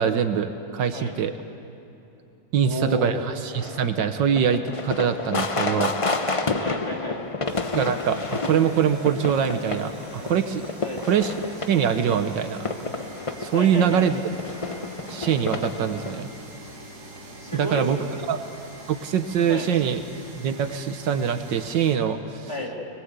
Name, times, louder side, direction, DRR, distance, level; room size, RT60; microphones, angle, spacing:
voice 1, 0.0-1.3 2.5-5.9 7.7-10.6 11.1-11.3 11.7-12.6 13.4-14.2 15.1-16.3 17.5-18.0 18.3-18.4 18.9-20.0 20.3-22.5, right 8 dB, 75° right, 9 dB, 1.6 m, -23 dB
voice 2, 2.6-3.1 6.6-7.2 10.8-11.1 13.5-14.1 17.4-18.3 19.5-19.7 22.5-22.9, left 1 dB, 15° left, -1 dB, 2.8 m, -32 dB
sound 1, 3.5-16.2, left 3 dB, 55° left, 0.3 m, -30 dB
sound 2, 7.4-22.0, right 1 dB, 55° right, 3.0 m, -44 dB
25.5 x 21.0 x 8.1 m, 2.8 s
omnidirectional pair, 2.0 m